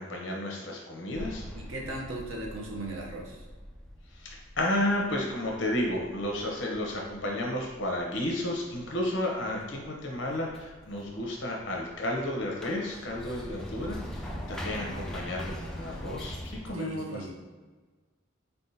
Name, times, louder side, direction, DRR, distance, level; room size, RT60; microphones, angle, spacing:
voice 1, 0.0-1.4 4.1-17.3, left 1 dB, 65° left, 0 dB, 0.8 m, -32 dB
sound 1, 1.1-16.7, equal, 5° left, 0.4 m, -43 dB
voice 2, 1.5-3.4 16.7-17.3, right 2 dB, 85° right, -1 dB, 0.8 m, -37 dB
4.1 x 3.5 x 2.8 m, 1.3 s
head